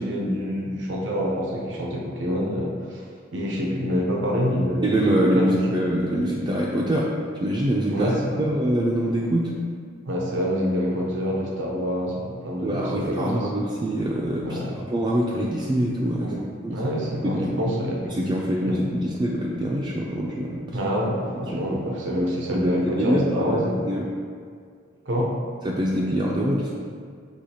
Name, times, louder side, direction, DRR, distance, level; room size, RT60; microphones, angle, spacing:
voice 1, 0.0-3.0 3.3-5.5 7.9-8.4 10.1-13.5 14.4-14.7 16.2-16.4 16.7-18.0 18.6-18.8 20.7-23.8 25.0-25.3, equal, 85° right, -2 dB, 0.6 m, -26 dB
voice 2, 4.8-7.1 7.4-8.1 8.4-9.5 12.6-16.3 16.6-16.8 17.2-17.5 18.0-20.8 22.5-24.1 25.6-26.7, right 1 dB, 25° right, -5 dB, 0.3 m, -24 dB
6.2 x 2.9 x 2.8 m, 2.1 s
head